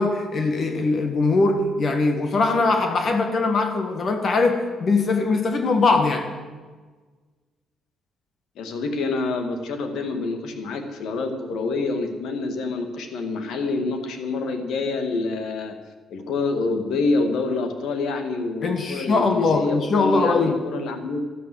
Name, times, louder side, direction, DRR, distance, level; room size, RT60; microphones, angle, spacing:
voice 1, 0.0-6.3 18.6-20.7, left 3 dB, 50° left, 5 dB, 1.9 m, -21 dB
voice 2, 8.6-15.7 16.1-21.2, left 3 dB, 80° left, 7 dB, 2.0 m, -27 dB
12.5 x 12.0 x 7.9 m, 1.4 s
cardioid pair, 90°, 0 cm